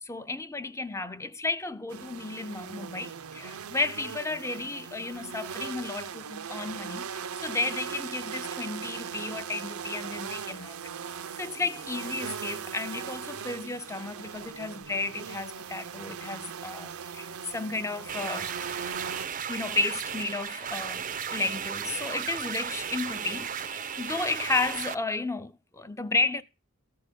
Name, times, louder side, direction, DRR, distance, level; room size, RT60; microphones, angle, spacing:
voice 1, 0.0-10.7 11.1-18.5 19.4-26.4, left 3 dB, 15° left, 0.5 m, -33 dB
sound 1, 1.9-19.3, right 7 dB, 80° right, 0.6 m, -39 dB
sound 2, 18.1-24.9, right 7 dB, 35° right, 0.5 m, -35 dB
14.0 x 4.8 x 8.3 m
head